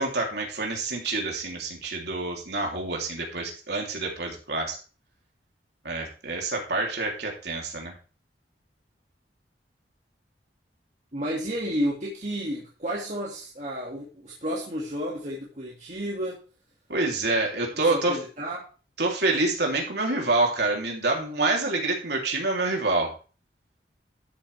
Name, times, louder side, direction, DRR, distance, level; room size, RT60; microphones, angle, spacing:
voice 1, 0.0-4.8 5.8-7.9 16.9-18.2 19.0-23.1, right 2 dB, 70° right, 0 dB, 3.5 m, -27 dB
voice 2, 11.1-16.4 17.8-18.7, equal, 40° right, -4 dB, 2.5 m, -31 dB
13.0 x 7.7 x 3.6 m, 0.35 s
head